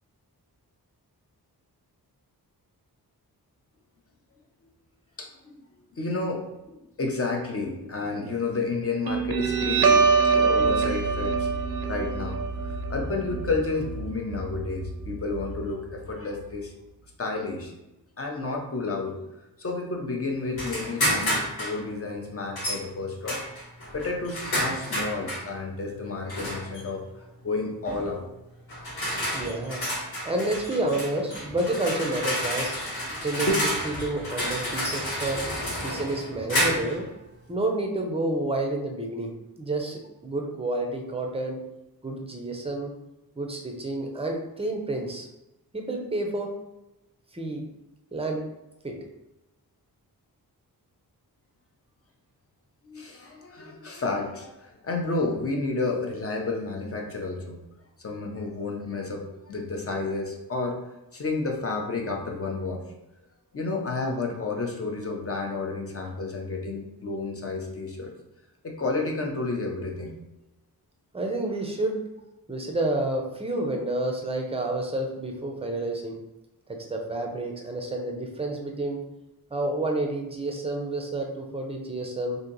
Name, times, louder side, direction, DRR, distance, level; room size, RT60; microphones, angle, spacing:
voice 1, 5.2-5.6 6.0-16.7 17.2-17.7 18.2-23.4 23.9-28.3 31.7-31.8 33.5-33.7 52.8-57.6 58.0-60.8 61.1-63.0 63.5-68.1 68.6-70.1, left 3 dB, 35° left, 1 dB, 0.6 m, -31 dB
Guitar, 9.1-16.1, right 5 dB, 70° right, 0.5 m, -25 dB
sound 1, 20.6-21.8 22.6-22.8 23.3-25.5 26.3-26.8 27.9-28.1 28.7-37.0, equal, 70° left, 1.3 m, -30 dB
voice 2, 29.3-29.8 30.2-32.7 33.2-33.5 33.8-35.4 35.8-37.1 37.5-39.3 39.6-41.6 42.0-42.9 43.4-45.3 45.7-46.5 47.3-47.6 48.1-48.4 48.8-49.0 71.1-72.0 72.5-76.2 76.7-79.0 79.5-82.4, right 2 dB, 15° right, 2 dB, 0.4 m, -29 dB
2.8 x 2.6 x 3.8 m, 0.94 s
wide cardioid pair, 145°, 38 cm